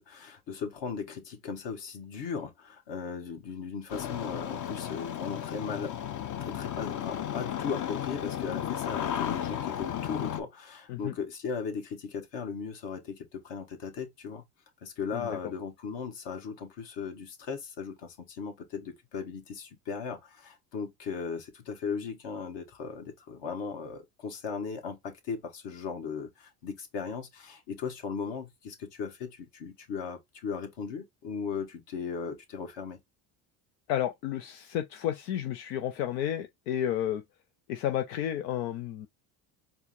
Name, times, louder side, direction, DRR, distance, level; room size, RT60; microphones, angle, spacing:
voice 1, 0.0-5.9 6.4-14.5 14.8-33.0, left 6 dB, 60° left, 1.8 m, -37 dB
Engine starting, 3.9-10.4, left 10 dB, 40° left, 0.7 m, -34 dB
voice 2, 33.9-37.2 37.7-39.1, left 11 dB, 90° left, 0.7 m, -31 dB
4.5 x 2.2 x 4.2 m
supercardioid pair, 85°, 47 cm